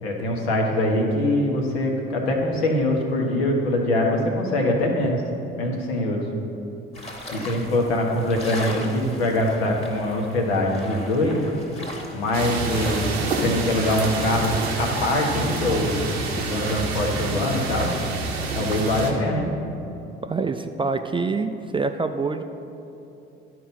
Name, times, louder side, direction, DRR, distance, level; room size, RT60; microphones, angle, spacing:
voice 1, 0.0-5.2 5.6-6.2 7.3-11.4 12.1-13.1 13.4-16.0 16.4-17.9 18.5-19.5, left 1 dB, 75° left, 0 dB, 1.3 m, -23 dB
sound 1, 6.9-16.8, left 1 dB, 20° left, 1.7 m, -38 dB
sound 2, 12.3-19.1, right 3 dB, 80° right, 1.0 m, -28 dB
voice 2, 20.2-22.4, right 4 dB, 15° right, 8 dB, 0.4 m, -26 dB
11.5 x 4.6 x 5.5 m, 2.8 s
figure-of-eight pair, 50°, 31 cm